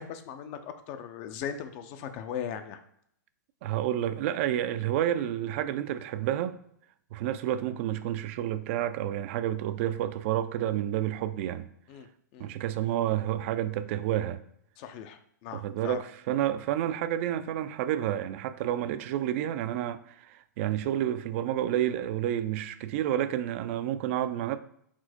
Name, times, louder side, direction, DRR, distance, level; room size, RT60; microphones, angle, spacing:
voice 1, 0.0-2.8 11.9-12.1 12.3-12.5 14.8-16.0, left 8 dB, 40° left, 0.5 m, -38 dB
voice 2, 3.6-6.6 7.1-11.7 12.4-14.4 15.5-24.6, right 11 dB, 45° right, 0.4 m, -30 dB
4.4 x 2.0 x 4.2 m
hypercardioid pair, 120°, 10 cm